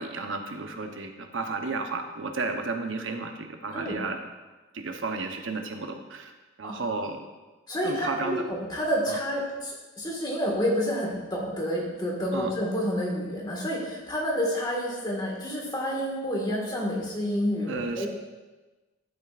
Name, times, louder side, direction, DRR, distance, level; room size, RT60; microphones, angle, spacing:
voice 1, 0.0-4.2 4.7-6.3 6.6-7.2 7.8-8.4 9.1-9.2 12.3-12.5 17.7-18.1, right 3 dB, 70° right, 5 dB, 0.8 m, -32 dB
voice 2, 6.6-6.9 7.7-18.1, equal, 20° left, -2 dB, 1.7 m, -29 dB
12.0 x 7.3 x 2.5 m, 1.2 s
head